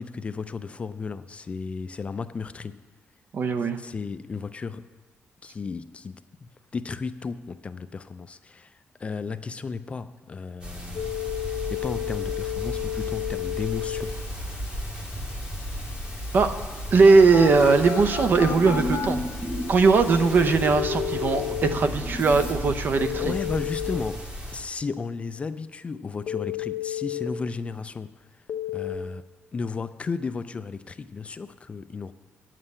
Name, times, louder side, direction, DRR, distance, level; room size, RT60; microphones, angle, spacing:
voice 1, 0.0-2.8 3.8-4.8 5.4-14.1 21.4-22.1 23.2-24.2 24.5-28.1 28.7-29.2 29.5-32.1, left 4 dB, 30° left, 0.3 m, -34 dB
voice 2, 3.3-3.8 16.3-16.5 16.9-19.3 19.7-23.4, right 4 dB, 50° right, 0.8 m, -19 dB
sound 1, 10.6-24.6, equal, 20° right, 2.0 m, -35 dB
Telephone, 11.0-21.8 23.0-24.0 26.3-27.3 28.5-29.0, left 13 dB, 75° left, 0.8 m, -34 dB
sound 2, 17.5-22.7, left 1 dB, 10° left, 1.8 m, -33 dB
9.6 x 7.5 x 7.9 m
wide cardioid pair, 150°, 4 cm